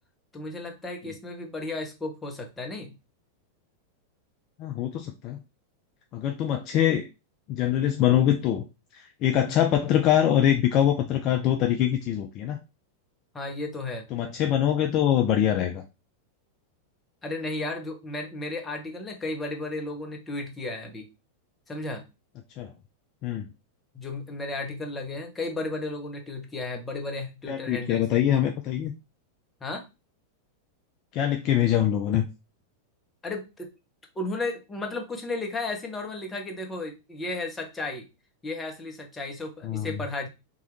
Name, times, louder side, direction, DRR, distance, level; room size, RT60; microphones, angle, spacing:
voice 1, 0.3-3.0 13.3-14.1 17.2-21.1 21.7-22.1 23.9-28.0 29.6-29.9 33.2-33.7 34.2-38.1 38.4-40.3, left 2 dB, 15° left, 2 dB, 0.8 m, -34 dB
voice 2, 4.6-5.4 6.1-7.1 7.5-8.6 8.9-12.6 14.1-15.8 22.6-22.7 23.2-23.5 27.5-28.9 31.1-32.2 39.6-40.0, left 11 dB, 40° left, 5 dB, 0.3 m, -24 dB
2.9 x 2.3 x 3.1 m, 0.26 s
figure-of-eight pair, 90°, 0 cm